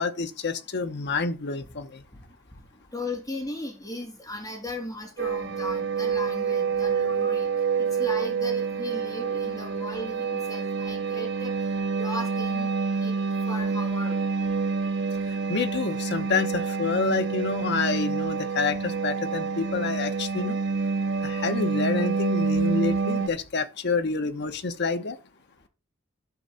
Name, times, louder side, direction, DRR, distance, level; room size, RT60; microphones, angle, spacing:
voice 1, 0.0-2.0 15.5-20.6 21.2-25.2, left 4 dB, 55° left, 0.9 m, -28 dB
voice 2, 2.9-7.5 7.8-11.5 12.0-12.7 13.0-13.1 13.5-14.2 17.1-17.2, left 1 dB, 15° left, 3.3 m, -36 dB
sound 1, 5.2-23.3, right 5 dB, 60° right, 0.9 m, -27 dB
12.0 x 5.3 x 4.1 m
head